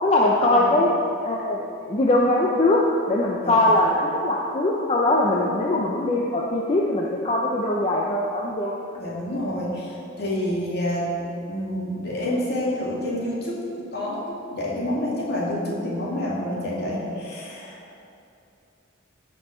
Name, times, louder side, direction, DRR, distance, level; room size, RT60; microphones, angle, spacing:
voice 1, 0.0-0.9 1.2-2.8 3.1-8.8, left 1 dB, 30° left, -3 dB, 0.7 m, -21 dB
voice 2, 3.4-3.8 5.3-5.6 9.0-17.8, left 1 dB, 50° left, -6 dB, 2.4 m, -28 dB
15.5 x 5.5 x 4.4 m, 2.6 s
head